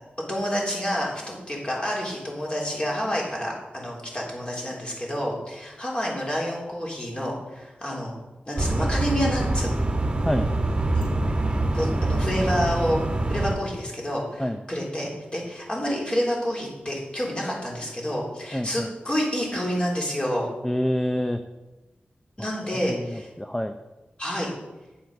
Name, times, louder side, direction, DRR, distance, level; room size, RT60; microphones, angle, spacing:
voice 1, 0.3-8.1 8.5-9.7 10.9-11.1 11.7-13.0 13.3-20.5 22.4-23.3 24.2-24.5, equal, 25° left, -3 dB, 3.4 m, -28 dB
sound 1, 8.6-13.5, right 2 dB, 25° right, 1.6 m, -25 dB
voice 2, 18.5-18.9 20.6-21.4 22.7-23.8, left 1 dB, 10° left, 7 dB, 0.6 m, -27 dB
9.3 x 7.1 x 6.4 m, 1.1 s
wide cardioid pair, 95°, 4 cm